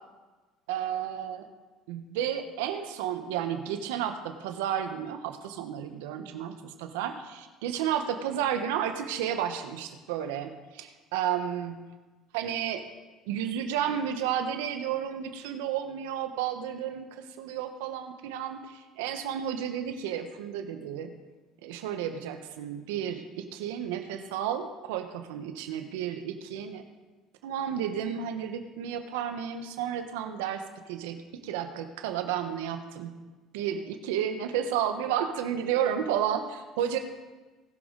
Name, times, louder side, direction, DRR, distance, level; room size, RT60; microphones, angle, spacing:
voice 1, 0.7-1.5 1.9-11.8 12.3-12.8 13.3-21.1 21.6-26.8 27.4-33.2 33.5-37.0, right 9 dB, 90° right, 7 dB, 1.1 m, -32 dB
19.5 x 7.1 x 4.0 m, 1.3 s
supercardioid pair, 100°, 0 cm